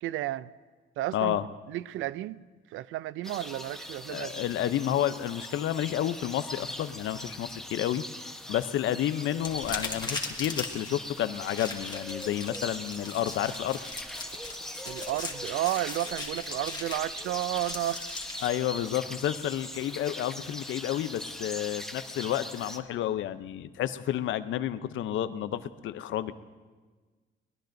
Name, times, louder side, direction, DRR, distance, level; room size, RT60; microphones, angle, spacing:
voice 1, 0.0-0.5 1.0-1.4 1.7-2.4 2.7-4.4 14.8-18.1, right 15 dB, 85° right, 18 dB, 0.4 m, -32 dB
voice 2, 1.1-1.5 4.1-8.0 8.5-13.8 18.4-26.3, left 11 dB, 75° left, 13 dB, 0.6 m, -30 dB
sound 1, 3.2-22.8, left 1 dB, ahead, 1.0 m, -41 dB
sound 2, 9.4-18.5, left 3 dB, 20° left, 1.8 m, -39 dB
22.0 x 20.0 x 2.6 m, 1.4 s
cardioid pair, 90°, 20 cm